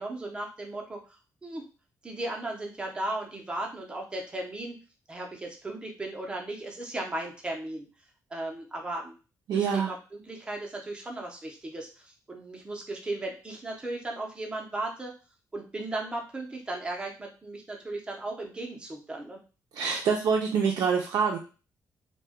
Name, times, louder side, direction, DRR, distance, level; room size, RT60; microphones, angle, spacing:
voice 1, 0.0-1.7 2.0-4.8 5.1-7.9 8.3-9.1 9.7-15.1 15.5-19.4, right 2 dB, 15° right, 0 dB, 0.6 m, -36 dB
voice 2, 9.5-9.9 19.7-21.4, right 6 dB, 70° right, -1 dB, 0.4 m, -25 dB
2.1 x 2.1 x 3.4 m, 0.33 s
wide cardioid pair, 160°, 7 cm